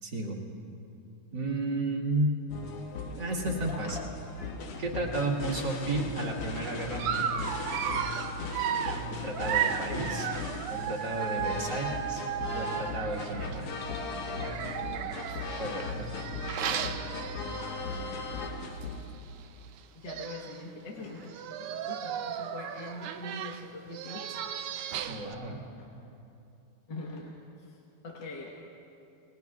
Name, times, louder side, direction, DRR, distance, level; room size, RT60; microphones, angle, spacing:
voice 1, 0.0-0.4 1.3-2.3 3.1-4.0 4.8-7.3 9.0-10.3 10.7-12.2 12.5-13.7 15.6-16.1 16.7-16.9 25.0-25.7, right 2 dB, 55° right, -1 dB, 2.4 m, -33 dB
sound 1, 2.5-19.0, left 3 dB, 85° left, 2.0 m, -37 dB
Dog, 7.0-13.6 14.3-18.0 18.4-18.5 18.8-18.9 19.8-19.9 20.1-20.6 21.2-25.3, right 9 dB, 90° right, 1.6 m, -35 dB
voice 2, 10.6-11.0 14.1-15.1 19.9-24.4 25.0-25.2 25.8-25.9 26.9-27.3 27.6-27.8 28.0-28.6, left 2 dB, 60° left, -2 dB, 1.9 m, -44 dB
29.0 x 19.5 x 2.4 m, 2.8 s
omnidirectional pair, 2.4 m